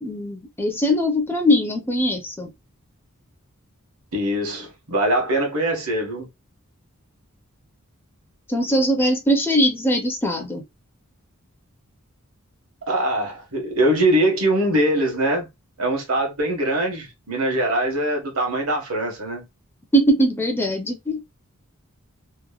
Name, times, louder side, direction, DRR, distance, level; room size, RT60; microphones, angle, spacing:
voice 1, 0.0-2.5 8.5-10.6 19.9-21.2, equal, 10° left, 0.5 m, -21 dB
voice 2, 4.1-6.3 12.9-15.5 15.8-19.5, right 1 dB, 70° right, 1.2 m, -22 dB
2.9 x 2.1 x 2.3 m
head